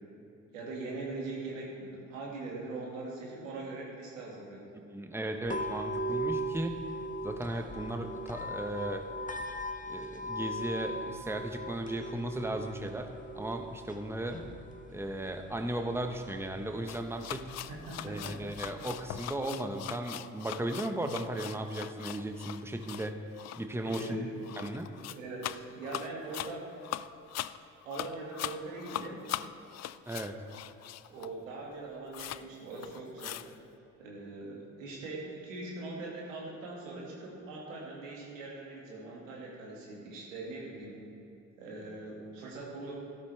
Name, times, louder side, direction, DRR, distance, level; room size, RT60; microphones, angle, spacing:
voice 1, 0.5-4.7 17.7-18.7 23.8-24.4 25.1-26.7 27.8-29.2 31.1-33.4 34.0-40.9 41.6-42.9, right 2 dB, 90° right, -3 dB, 2.2 m, -41 dB
voice 2, 4.9-6.9 7.2-9.1 9.9-14.4 14.9-17.5 18.0-23.2 23.6-24.3 24.6-24.9 30.1-30.4, right 1 dB, 5° right, 5 dB, 1.1 m, -36 dB
sound 1, 5.5-19.5, right 1 dB, 20° left, 1.2 m, -40 dB
sound 2, 16.9-31.4 31.7-31.8 32.1-32.5 32.7-33.6, left 13 dB, 45° left, 0.4 m, -41 dB
13.0 x 12.5 x 3.4 m, 2.9 s
hypercardioid pair, 45°, 38 cm